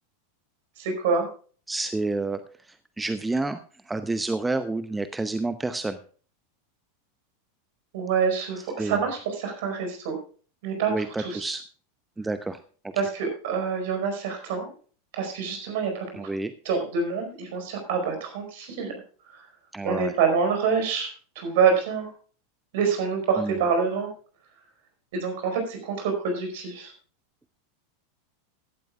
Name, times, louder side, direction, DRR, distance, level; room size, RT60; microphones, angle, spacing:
voice 1, 0.8-1.3 7.9-10.2 10.6-11.5 12.9-14.7 15.1-16.3 16.6-18.9 19.3-19.5 19.8-21.1 21.3-22.1 22.7-24.1 25.1-26.9, right 5 dB, 55° right, 4 dB, 4.8 m, -26 dB
voice 2, 1.7-3.6 3.9-6.0 8.8-9.0 10.9-11.6 12.2-12.6 16.1-16.5 19.7-20.1 23.4-23.6, right 2 dB, 10° right, 11 dB, 0.7 m, -29 dB
16.5 x 12.0 x 2.3 m, 0.40 s
figure-of-eight pair, 85°, 0 cm